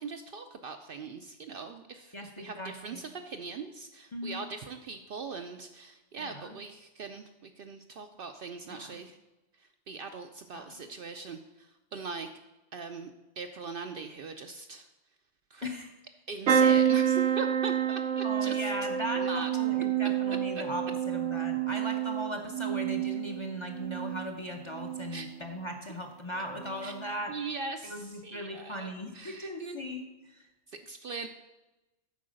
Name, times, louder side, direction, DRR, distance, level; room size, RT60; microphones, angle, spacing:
voice 1, 0.0-9.2 9.6-12.3 12.7-13.1 13.4-14.9 15.5-15.6 16.3-18.7 19.1-19.5 25.1-25.3 26.8-26.9 27.3-29.8 30.8-31.3, right 4 dB, 60° right, 6 dB, 0.6 m, -41 dB
voice 2, 2.1-3.0 4.1-4.4 6.2-6.6 8.7-9.0 10.5-10.7 15.6-15.9 18.2-27.3 27.8-30.4, equal, 30° left, 3 dB, 0.6 m, -38 dB
sound 1, 16.5-24.3 24.7-25.3 26.5-26.7 27.0-27.1, right 9 dB, 80° right, 1.0 m, -28 dB
8.3 x 4.8 x 6.3 m, 1.0 s
omnidirectional pair, 1.2 m